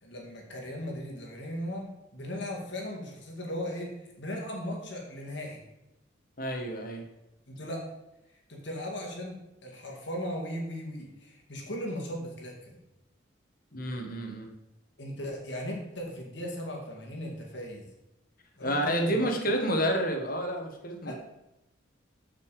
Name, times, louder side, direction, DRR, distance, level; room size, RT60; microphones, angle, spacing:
voice 1, 0.0-5.6 7.5-7.8 8.5-12.8 15.0-17.9 18.6-19.3 21.0-21.1, equal, 65° left, -1 dB, 2.2 m, -37 dB
voice 2, 6.4-7.0 13.7-14.5 18.6-21.1, equal, 45° left, 2 dB, 1.4 m, -29 dB
6.9 x 6.6 x 4.9 m, 0.93 s
head